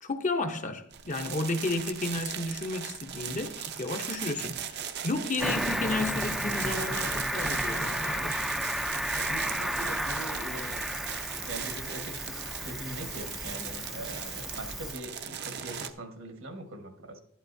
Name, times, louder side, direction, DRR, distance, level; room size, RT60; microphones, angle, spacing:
voice 1, 0.0-8.4, left 2 dB, 35° left, 0.7 m, -32 dB
sound 1, 0.9-15.9, right 8 dB, 55° right, 0.7 m, -39 dB
Cricket, 5.4-14.9, equal, ahead, 0.4 m, -33 dB
voice 2, 9.1-10.9 11.4-17.2, right 1 dB, 70° right, 1.4 m, -42 dB
11.0 x 11.0 x 2.7 m
head